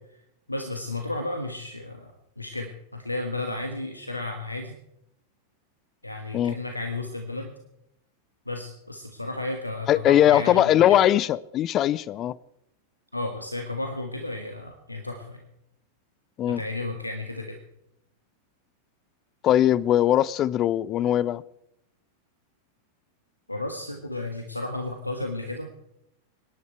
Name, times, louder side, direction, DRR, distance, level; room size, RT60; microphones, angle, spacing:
voice 1, 0.5-4.7 6.0-7.5 8.5-11.1 13.1-15.4 16.5-17.6 23.5-25.7, left 2 dB, 85° left, 1.3 m, -33 dB
voice 2, 9.9-12.4 16.4-16.6 19.4-21.4, left 12 dB, 30° left, 0.4 m, -20 dB
25.0 x 10.5 x 4.6 m
figure-of-eight pair, 90°, 0 cm